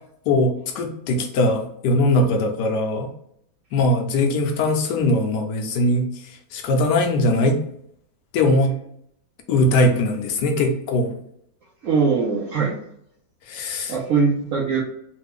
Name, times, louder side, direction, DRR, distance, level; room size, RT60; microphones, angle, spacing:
voice 1, 0.3-3.1 3.7-6.1 6.5-7.6 8.3-8.7 9.5-11.1 13.5-13.9, left 1 dB, 75° left, 4 dB, 1.1 m, -20 dB
voice 2, 11.8-12.8 13.9-14.8, right 5 dB, 70° right, -3 dB, 0.8 m, -21 dB
3.2 x 2.2 x 3.4 m, 0.71 s
omnidirectional pair, 2.0 m